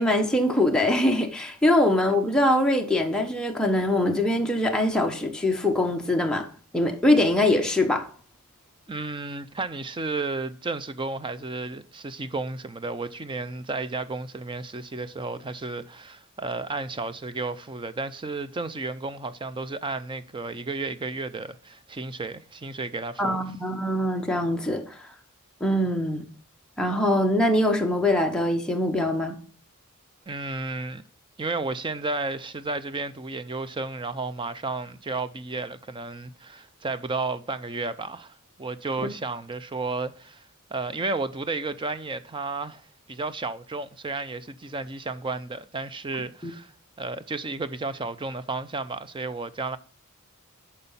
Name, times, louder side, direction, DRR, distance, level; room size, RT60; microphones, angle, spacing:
voice 1, 0.0-6.5 6.7-8.1 23.2-25.0 25.6-26.3 26.8-29.4 46.4-46.5, left 1 dB, 5° left, 1.0 m, -23 dB
voice 2, 8.9-23.4 30.3-31.0 31.4-46.7 47.0-49.8, right 3 dB, 20° right, 0.5 m, -32 dB
11.0 x 4.3 x 5.6 m
head